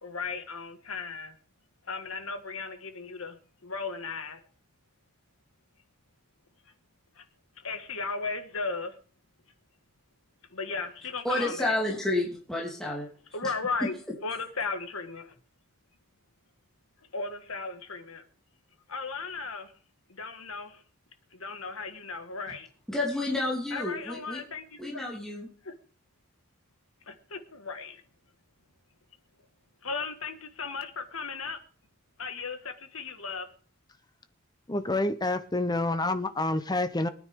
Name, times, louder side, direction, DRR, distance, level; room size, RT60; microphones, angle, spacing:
voice 1, 0.0-1.4 1.8-4.4 7.1-7.2 7.6-9.0 10.5-11.8 13.3-13.9 14.2-15.3 17.1-18.2 18.9-19.7 20.1-20.8 21.3-22.7 23.7-25.0 25.6-25.7 27.1-28.0 29.8-31.6 32.2-33.5, left 4 dB, 70° left, 1.7 m, -36 dB
voice 2, 11.2-13.1 13.4-13.5 13.8-13.9 22.9-24.4 24.8-25.5, left 2 dB, 5° left, 2.8 m, -30 dB
voice 3, 34.7-37.1, left 2 dB, 20° left, 0.7 m, -28 dB
23.5 x 9.5 x 3.6 m
head